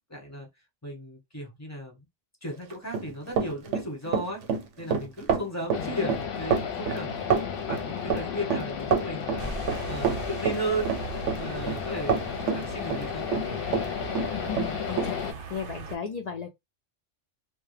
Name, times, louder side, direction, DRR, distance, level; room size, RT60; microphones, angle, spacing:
voice 1, 0.1-0.5 0.8-2.1 2.4-4.4 4.8-13.3, right 1 dB, 15° left, 0.8 m, -35 dB
Run, 2.7-13.9 14.1-15.1, right 6 dB, 80° right, 0.9 m, -27 dB
sound 1, 5.7-15.3, left 7 dB, 60° left, 0.7 m, -34 dB
voice 2, 5.8-6.1 14.3-15.2 15.5-16.5, left 7 dB, 85° left, 0.3 m, -35 dB
sound 2, 9.4-16.0, right 4 dB, 60° right, 0.7 m, -39 dB
2.2 x 2.1 x 3.1 m
omnidirectional pair, 1.2 m